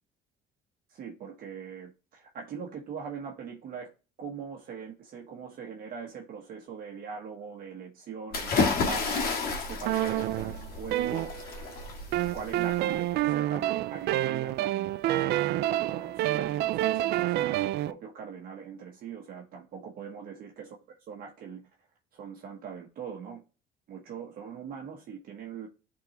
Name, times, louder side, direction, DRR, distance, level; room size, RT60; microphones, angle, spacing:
voice 1, 0.9-3.9 4.2-9.3 9.6-11.7 12.3-20.8 21.1-21.7 22.1-23.4 23.9-25.7, right 6 dB, 60° right, 1.1 m, -42 dB
sound 1, 8.3-13.1, left 4 dB, 60° left, 1.8 m, -31 dB
sound 2, 9.9-11.7 12.1-17.9, right 15 dB, 75° right, 0.4 m, -28 dB
10.5 x 3.7 x 2.9 m
cardioid pair, 110°, 17 cm